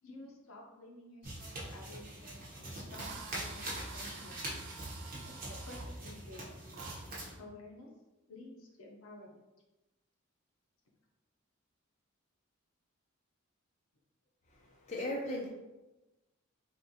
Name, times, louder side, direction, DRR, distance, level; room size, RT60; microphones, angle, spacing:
voice 1, 0.0-4.5 5.2-7.0 7.4-7.9 8.3-9.4, left 2 dB, 75° left, 0 dB, 0.7 m, -52 dB
sound 1, 1.2-7.3, right 1 dB, 45° right, 0.8 m, -43 dB
Drill, 2.3-2.4 2.9-5.9 6.7-7.0, right 5 dB, 60° right, 0.4 m, -49 dB
voice 2, 14.5-15.5, left 1 dB, 35° left, -2 dB, 0.5 m, -38 dB
3.7 x 2.5 x 2.7 m, 1.1 s
head